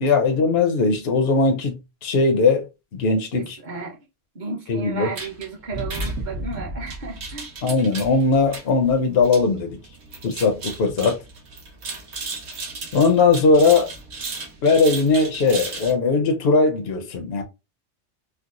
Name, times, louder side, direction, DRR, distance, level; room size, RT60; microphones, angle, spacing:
voice 1, 0.0-2.7 2.9-3.6 4.7-5.1 7.6-9.8 10.2-11.2 12.9-13.9 14.6-17.4, left 4 dB, 60° left, 0.9 m, -19 dB
voice 2, 3.3-4.0 4.3-7.5, right 4 dB, 40° right, 1.1 m, -33 dB
sound 1, 5.2-15.9, right 2 dB, 60° right, 1.2 m, -34 dB
4.6 x 2.1 x 2.4 m
omnidirectional pair, 1.3 m